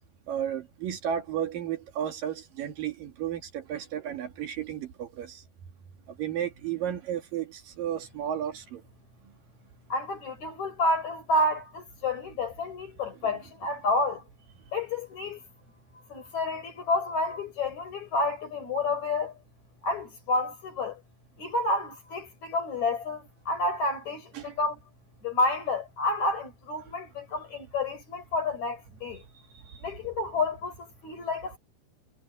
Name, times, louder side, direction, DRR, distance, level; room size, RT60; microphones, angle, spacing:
voice 1, 0.3-5.4 6.1-8.8 9.2-9.3 13.1-13.4 24.3-24.6 29.5-29.9, right 9 dB, 60° right, 3.1 m, -33 dB
voice 2, 9.9-14.2 14.7-15.4 16.1-19.4 19.8-21.0 21.4-24.8 25.2-29.2 29.8-31.6, left 2 dB, 45° left, 6.4 m, -29 dB
omnidirectional pair, 4.7 m